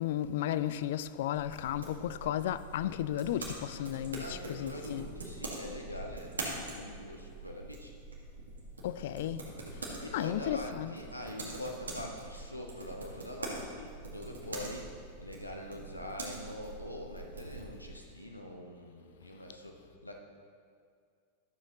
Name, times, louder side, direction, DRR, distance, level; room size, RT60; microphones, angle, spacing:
voice 1, 0.0-5.1 8.8-9.5 10.1-10.9, left 11 dB, 55° left, 0.3 m, -34 dB
sound 1, 1.3-18.0, right 2 dB, 75° right, 1.7 m, -44 dB
voice 2, 4.2-7.9 10.0-20.2, left 1 dB, 85° left, 0.9 m, -44 dB
12.5 x 7.2 x 4.1 m
figure-of-eight pair, 90°, 0 cm